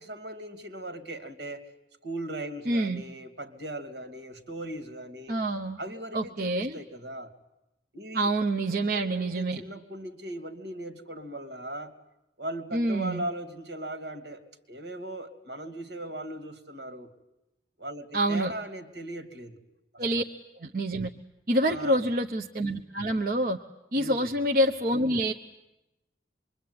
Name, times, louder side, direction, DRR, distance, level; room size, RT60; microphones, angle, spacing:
voice 1, 0.0-1.7 2.0-5.4 5.8-7.3 7.9-8.3 8.6-11.9 12.4-17.1 17.8-19.6 19.9-20.2 21.6-22.1 23.9-24.3, right 1 dB, 80° right, 8 dB, 2.9 m, -39 dB
voice 2, 2.7-3.0 5.3-5.8 6.1-6.8 8.1-9.6 12.7-13.2 18.1-18.5 20.0-20.2 20.6-21.1 21.5-23.6 23.9-25.3, right 1 dB, 55° right, 3 dB, 1.1 m, -27 dB
26.0 x 23.5 x 9.7 m, 0.91 s
head